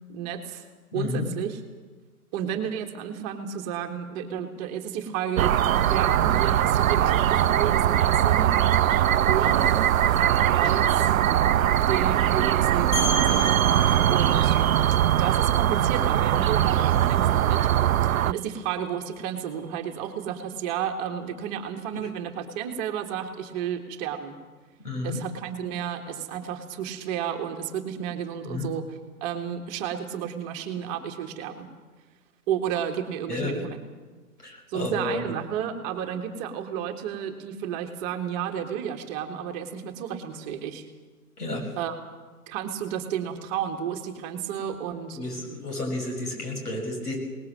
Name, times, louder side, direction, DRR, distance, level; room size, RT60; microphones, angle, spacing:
voice 1, 0.1-0.6 0.9-1.6 2.3-8.7 9.3-9.7 10.5-11.2 11.9-13.5 14.1-14.6 15.2-17.7 18.2-24.4 25.0-31.7 32.5-33.8 34.7-40.8 41.8-41.9 42.5-45.2, right 9 dB, 25° right, 5 dB, 1.7 m, -32 dB
voice 2, 0.9-1.3 21.9-22.1 24.8-25.2 28.4-28.7 33.3-33.5 34.4-35.2 41.4-41.7 45.1-47.2, left 2 dB, 90° left, 1 dB, 7.0 m, -31 dB
sound 1, 5.4-18.3, right 11 dB, 65° right, 0.6 m, -21 dB
sound 2, 12.9-18.4, right 2 dB, 65° left, 6.7 m, -33 dB
20.5 x 19.5 x 7.5 m, 1.3 s
hypercardioid pair, 135°, 45 cm